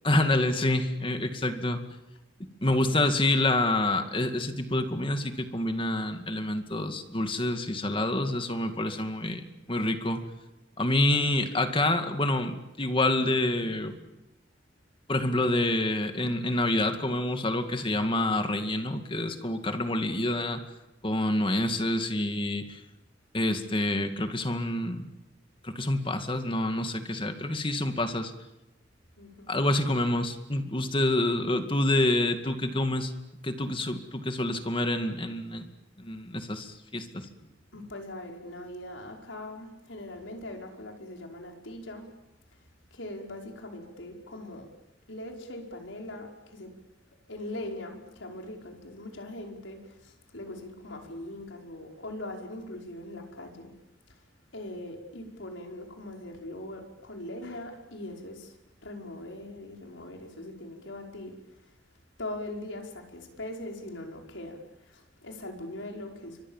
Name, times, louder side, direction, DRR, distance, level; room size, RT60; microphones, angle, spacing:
voice 1, 0.0-1.8 2.6-9.4 9.7-10.3 10.8-13.9 15.1-20.6 21.0-22.8 23.3-25.1 25.6-28.3 29.5-33.1 33.4-35.7 36.0-37.3, left 1 dB, 30° left, 7 dB, 2.2 m, -27 dB
voice 2, 27.2-27.6 29.2-29.5 37.7-42.1 42.9-44.7 45.1-46.7 47.3-53.7 54.5-58.5 58.8-61.3 62.2-64.6 64.9-66.5, left 1 dB, 90° left, 2 dB, 5.4 m, -41 dB
29.5 x 24.5 x 7.4 m, 0.99 s
head